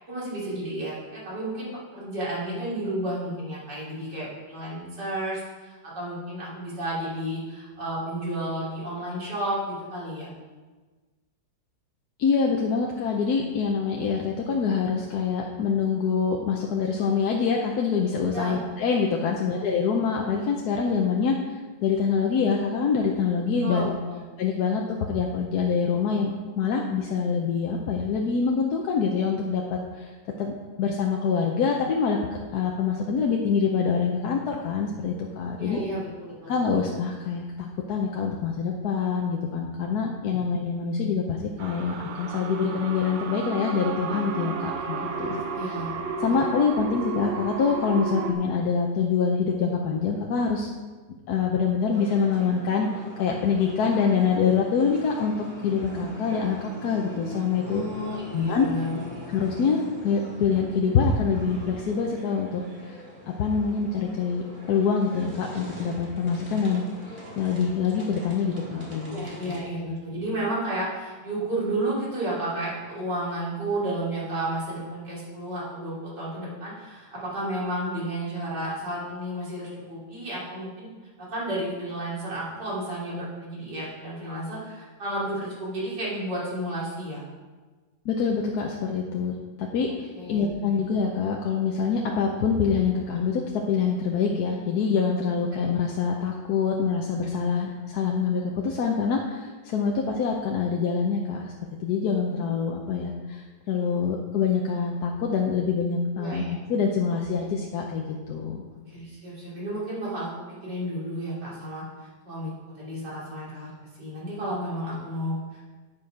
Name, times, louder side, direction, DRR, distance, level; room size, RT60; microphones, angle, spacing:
voice 1, 0.1-10.3 18.3-18.6 19.4-19.6 23.6-24.2 35.6-36.8 40.3-40.5 45.1-46.0 46.3-46.4 57.6-59.1 69.1-80.9 81.2-87.2 90.2-90.8 106.2-106.5 108.9-115.7, right 1 dB, 70° right, -8 dB, 3.8 m, -32 dB
voice 2, 12.2-23.9 24.4-30.1 30.4-32.2 32.5-35.8 36.5-37.4 37.9-45.7 46.2-50.7 51.3-55.3 55.6-57.8 58.3-58.7 59.3-63.0 63.3-69.2 88.0-101.5 101.8-106.4 106.7-108.6, left 5 dB, 65° left, 0 dB, 1.2 m, -25 dB
sound 1, 41.6-48.3, right 5 dB, 90° right, 1.6 m, -33 dB
sound 2, 51.9-69.6, equal, 30° right, 1.9 m, -42 dB
9.8 x 5.6 x 5.0 m, 1.3 s
omnidirectional pair, 1.9 m